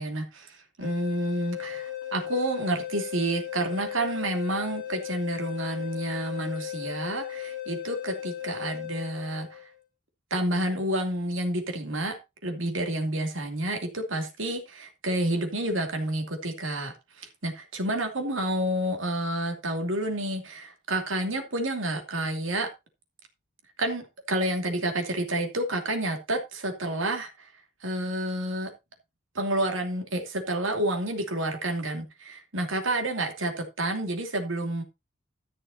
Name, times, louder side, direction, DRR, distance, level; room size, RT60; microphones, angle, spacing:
voice 1, 0.0-9.6 10.3-22.7 23.8-27.5 27.8-28.7 29.3-34.8, right 1 dB, 75° right, 2.7 m, -29 dB
sound 1, 0.8-9.7, left 12 dB, 35° left, 5.6 m, -36 dB
13.5 x 6.4 x 4.1 m
head